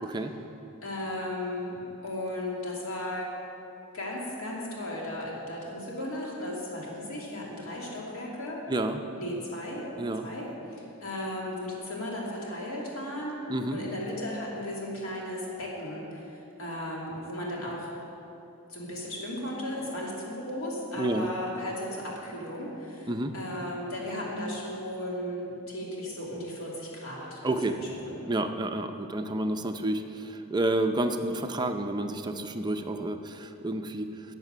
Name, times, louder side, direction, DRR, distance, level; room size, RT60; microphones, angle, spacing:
voice 1, 0.8-3.3 3.9-8.6 9.2-9.9 10.2-10.5 11.0-13.4 13.7-17.9 18.7-28.2, left 1 dB, 70° left, -3 dB, 2.5 m, -35 dB
voice 2, 8.7-9.0 10.0-10.3 13.5-13.8 21.0-21.3 23.1-23.3 27.4-27.7 28.3-34.1, right 1 dB, 20° right, 6 dB, 0.5 m, -30 dB
11.0 x 8.1 x 6.7 m, 3.0 s
head